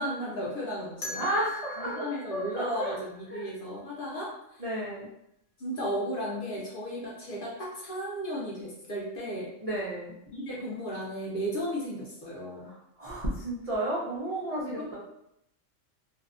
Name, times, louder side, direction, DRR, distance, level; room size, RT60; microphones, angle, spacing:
voice 1, 0.0-1.3 1.8-4.3 5.6-9.5 10.3-12.7 14.7-14.9, equal, 55° left, -5 dB, 0.6 m, -34 dB
sound 1, 1.0-3.9, left 2 dB, 85° left, 1.0 m, -42 dB
voice 2, 1.1-3.0 3.3-3.5 4.6-5.1 9.6-10.1 12.6-15.0, right 1 dB, 65° right, -6 dB, 0.3 m, -32 dB
2.6 x 2.1 x 2.4 m, 0.79 s
omnidirectional pair, 1.3 m